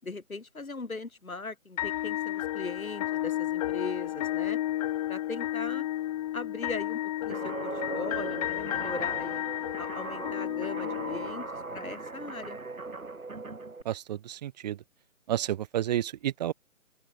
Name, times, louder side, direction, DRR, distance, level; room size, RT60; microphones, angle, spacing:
voice 1, 0.0-4.6 5.1-5.9 6.3-9.4 9.8-11.5 11.7-12.6, left 3 dB, 80° left, 7.0 m, -39 dB
sound 1, 1.8-11.8, left 14 dB, 25° left, 3.6 m, -32 dB
Guitar, 7.3-13.8, right 3 dB, 80° right, 7.2 m, -39 dB
voice 2, 13.9-14.8 15.3-16.5, right 11 dB, 30° right, 3.6 m, -31 dB
open air
figure-of-eight pair, 150°, 41 cm